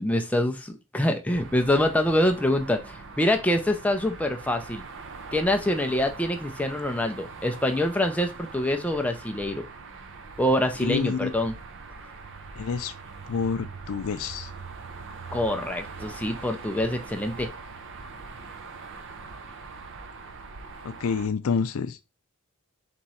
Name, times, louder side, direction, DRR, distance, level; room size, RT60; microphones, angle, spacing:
voice 1, 0.0-4.8 5.3-9.6 10.4-11.5 15.3-17.5, left 1 dB, 5° left, 0.4 m, -25 dB
sound 1, 1.3-21.3, right 4 dB, 55° right, 0.6 m, -42 dB
voice 2, 10.8-11.3 12.6-12.9 13.3-14.5 21.0-22.0, left 5 dB, 65° left, 0.4 m, -28 dB
3.6 x 3.0 x 4.2 m
head